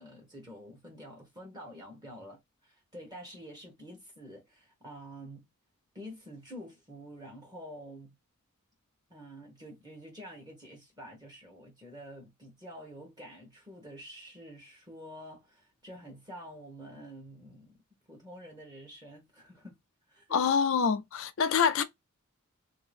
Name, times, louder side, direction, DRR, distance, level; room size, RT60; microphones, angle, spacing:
voice 1, 0.0-5.4 5.9-8.2 9.1-17.8 18.1-19.7 20.1-20.5, equal, 20° right, 1.0 m, -48 dB
voice 2, 20.3-21.8, left 6 dB, 65° left, 0.4 m, -26 dB
2.9 x 2.7 x 3.3 m
head